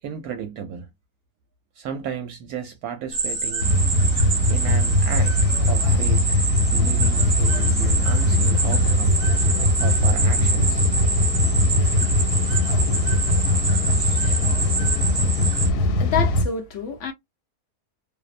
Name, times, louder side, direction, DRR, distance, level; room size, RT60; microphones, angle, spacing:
voice 1, 0.0-0.9 1.8-3.7 4.5-9.2 9.8-10.9, right 8 dB, 75° right, 1.0 m, -34 dB
sound 1, 3.1-15.7, right 4 dB, 40° right, 0.7 m, -27 dB
sound 2, 3.6-16.4, left 1 dB, 90° left, 1.2 m, -20 dB
voice 2, 15.8-17.1, left 7 dB, 65° left, 0.8 m, -28 dB
2.7 x 2.0 x 2.3 m
omnidirectional pair, 1.7 m